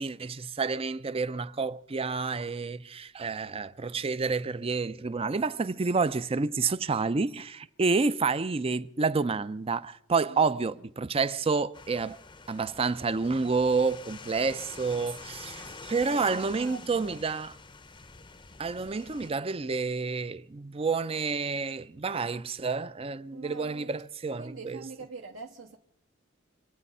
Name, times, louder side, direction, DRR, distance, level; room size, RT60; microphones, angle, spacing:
voice 1, 0.0-12.2 12.5-17.5 18.6-24.8, right 4 dB, 30° right, 0.5 m, -29 dB
voice 2, 10.2-10.9 16.0-17.2 23.3-23.9 24.3-25.8, right 4 dB, 65° right, 1.2 m, -45 dB
sound 1, 11.7-19.3, left 4 dB, 20° left, 0.7 m, -47 dB
26.5 x 9.1 x 5.5 m
head